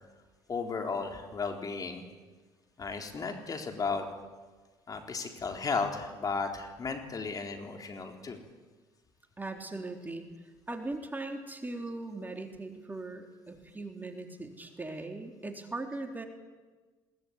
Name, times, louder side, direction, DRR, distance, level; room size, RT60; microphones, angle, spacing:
voice 1, 0.5-2.0 2.8-4.1 4.9-8.4, left 4 dB, 35° left, 4 dB, 3.9 m, -34 dB
voice 2, 9.4-10.3 10.7-16.3, right 2 dB, 20° right, 4 dB, 3.6 m, -39 dB
21.0 x 19.0 x 9.7 m, 1.3 s
supercardioid pair, 75°, 10 cm